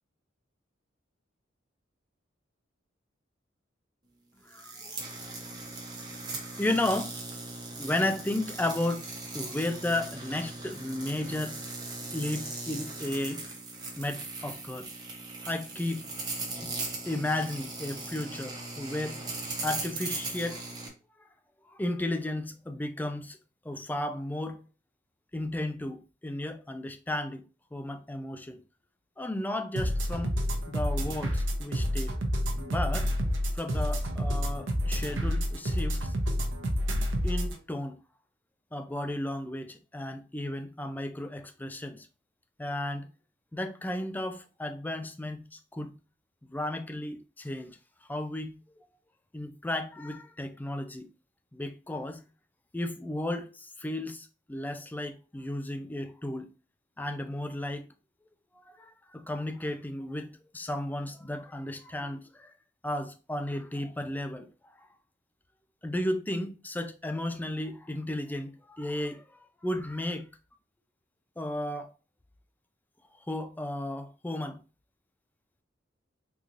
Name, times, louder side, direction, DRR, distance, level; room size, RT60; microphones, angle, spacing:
voice 1, 4.5-5.3 6.4-7.1 7.8-9.1 9.3-11.6 12.1-13.4 14.0-14.9 15.5-16.0 16.6-16.7 17.1-19.2 19.6-20.7 21.7-23.4 23.6-24.6 25.3-27.4 27.7-28.6 29.2-30.4 30.7-32.2 32.6-33.1 33.5-36.1 37.2-38.0 38.7-42.1 42.6-43.1 43.5-45.9 46.5-47.8 48.1-48.6 49.3-51.1 51.5-52.2 52.7-56.5 57.0-57.8 58.7-62.5 62.8-64.5 65.8-70.3 71.4-71.9 73.3-74.6, left 1 dB, 10° left, 0.3 m, -34 dB
sound 1, 4.5-20.9, right 3 dB, 20° right, 0.8 m, -39 dB
sound 2, 29.8-37.6, equal, 80° right, 0.8 m, -29 dB
3.8 x 2.9 x 2.5 m
head